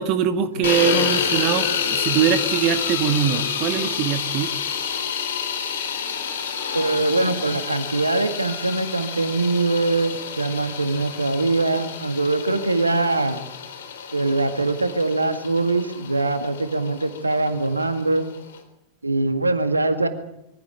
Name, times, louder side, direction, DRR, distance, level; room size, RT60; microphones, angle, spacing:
voice 1, 0.0-4.5, right 8 dB, 40° right, 10 dB, 1.8 m, -22 dB
sound 1, 0.6-18.6, left 7 dB, 60° left, 3.9 m, -29 dB
voice 2, 0.6-1.1 6.7-13.4 14.1-18.3 19.0-20.1, right 2 dB, 80° right, 9 dB, 1.9 m, -23 dB
23.5 x 16.5 x 8.9 m, 0.86 s
figure-of-eight pair, 90°, 0 cm